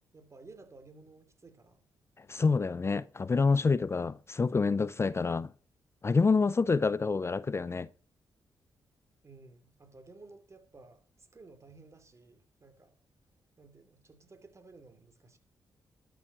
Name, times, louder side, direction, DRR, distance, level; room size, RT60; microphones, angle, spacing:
voice 1, 0.0-1.8 9.2-13.0 13.6-15.4, right 3 dB, 35° right, 2.8 m, -55 dB
voice 2, 2.2-5.5 6.0-7.9, left 4 dB, 35° left, 0.5 m, -27 dB
12.5 x 7.0 x 6.0 m
supercardioid pair, 60°, 8 cm